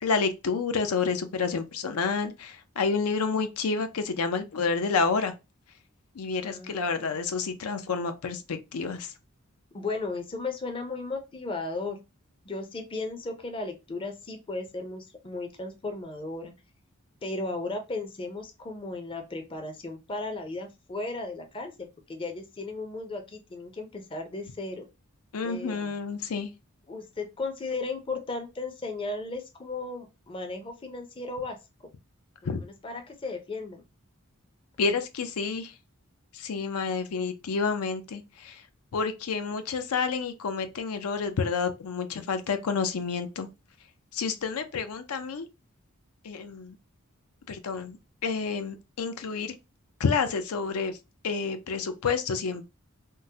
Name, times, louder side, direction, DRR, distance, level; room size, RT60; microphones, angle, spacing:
voice 1, 0.0-5.3 6.2-9.1 25.3-26.5 32.5-32.6 34.8-35.7 36.3-38.6 38.9-43.5 44.1-45.5 46.2-46.8 47.5-48.0 48.2-49.5 50.0-51.0 51.2-52.6, left 5 dB, 90° left, 0.5 m, -29 dB
voice 2, 6.4-7.1 9.7-12.0 12.5-16.5 17.2-24.8 25.4-25.9 26.9-31.6 32.4-33.8, left 3 dB, 25° left, 0.5 m, -35 dB
3.6 x 2.0 x 2.7 m
head